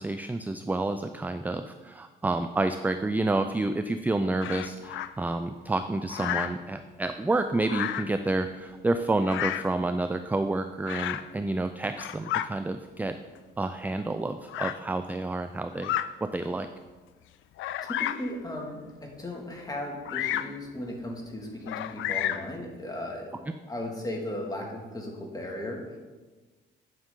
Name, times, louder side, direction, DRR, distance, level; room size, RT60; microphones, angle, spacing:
voice 1, 0.0-13.2 13.6-15.9 16.2-16.7, right 2 dB, 10° right, 9 dB, 0.3 m, -29 dB
Bird vocalization bird call bird song, 4.4-5.1 6.1-6.6 7.6-8.2 9.2-9.7 10.9-11.3 11.8-12.5 13.4-13.5 14.5-14.8 15.7-16.1 16.7-16.8 17.6-18.3 20.0-20.6 21.7-22.5, left 12 dB, 75° left, 0.4 m, -31 dB
voice 2, 17.8-23.4 23.7-26.0, left 1 dB, 20° left, -1 dB, 2.0 m, -36 dB
9.7 x 6.2 x 3.8 m, 1.3 s
cardioid pair, 90°, 20 cm